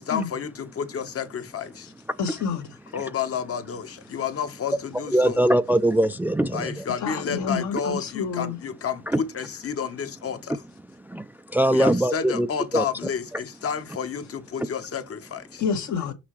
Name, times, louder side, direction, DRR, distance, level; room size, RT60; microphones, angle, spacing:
voice 1, 0.0-1.9 2.9-5.4 6.5-10.6 11.7-15.6, left 7 dB, 50° left, 1.2 m, -30 dB
voice 2, 2.2-2.7 7.0-8.6 15.6-16.1, left 5 dB, 70° left, 1.6 m, -28 dB
voice 3, 5.1-6.8 9.1-9.2 11.1-11.2 11.5-12.5 12.7-12.8, right 1 dB, 5° right, 0.3 m, -21 dB
5.9 x 5.6 x 3.1 m
cardioid pair, 90°, 30 cm